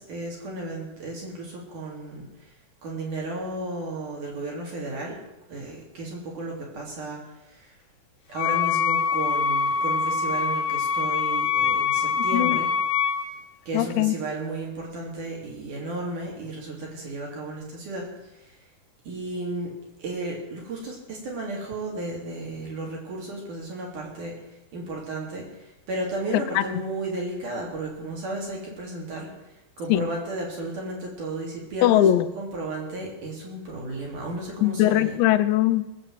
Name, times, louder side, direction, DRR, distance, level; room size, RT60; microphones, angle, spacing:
voice 1, 0.0-2.5 2.8-5.2 5.5-7.2 7.5-7.8 8.3-12.7 13.7-18.6 19.0-19.7 20.0-24.4 24.7-29.3 29.8-35.2, right 2 dB, 50° right, -2 dB, 4.5 m, -34 dB
Wind instrument woodwind instrument, 8.3-13.3, left 6 dB, 65° left, 2.4 m, -24 dB
voice 2, 13.7-14.1 26.3-26.6 29.9-30.1 31.8-32.3 34.6-35.8, left 13 dB, 85° left, 9 dB, 3.0 m, -20 dB
19.5 x 7.7 x 7.6 m, 0.94 s
omnidirectional pair, 4.9 m